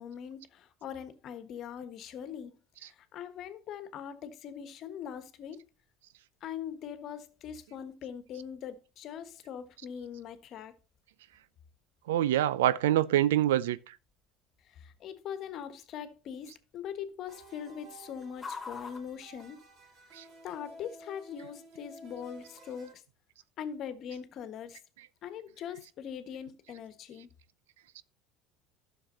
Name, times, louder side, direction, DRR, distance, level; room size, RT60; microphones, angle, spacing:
voice 1, 0.0-2.5 2.8-5.6 6.4-10.7 14.6-19.6 20.4-23.0 23.6-24.8 25.2-27.3, left 8 dB, 55° left, 1.4 m, -42 dB
sound 1, 5.4-20.2, left 4 dB, 20° left, 2.9 m, -54 dB
voice 2, 12.1-13.8, right 12 dB, 85° right, 0.5 m, -25 dB
sound 2, 17.3-22.9, right 1 dB, 50° right, 3.0 m, -53 dB
12.0 x 6.5 x 4.0 m
hypercardioid pair, 80°, 0 cm